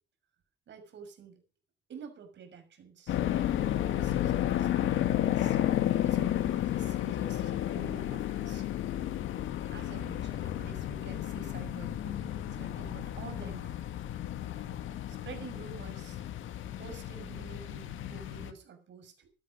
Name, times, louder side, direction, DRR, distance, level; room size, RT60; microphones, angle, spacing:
voice 1, 0.7-1.4 1.9-3.2 3.8-5.6 6.0-8.6 9.7-14.0 15.1-16.2 16.8-19.3, right 6 dB, 65° right, 6 dB, 6.4 m, -49 dB
sound 1, 3.1-18.5, left 12 dB, 80° left, 1.9 m, -32 dB
15.5 x 12.5 x 5.4 m, 0.36 s
cardioid pair, 90°, 20 cm